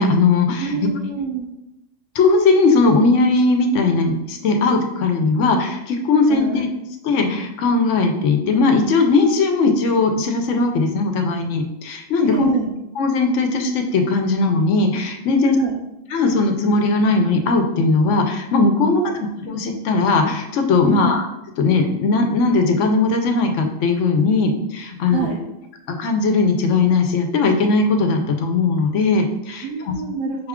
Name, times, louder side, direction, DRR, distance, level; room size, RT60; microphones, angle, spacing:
voice 1, 0.0-0.8 2.1-6.7 7.0-12.5 13.0-15.6 16.1-21.3 21.6-25.3 25.9-29.9 30.4-30.5, left 3 dB, 70° left, 5 dB, 0.9 m, -18 dB
voice 2, 0.6-1.5 6.3-6.7 12.2-12.7 15.5-15.7 18.9-19.2 20.9-21.2 25.0-25.4 29.6-30.5, right 6 dB, 80° right, -3 dB, 1.0 m, -26 dB
5.5 x 2.3 x 3.5 m, 0.87 s
omnidirectional pair, 1.4 m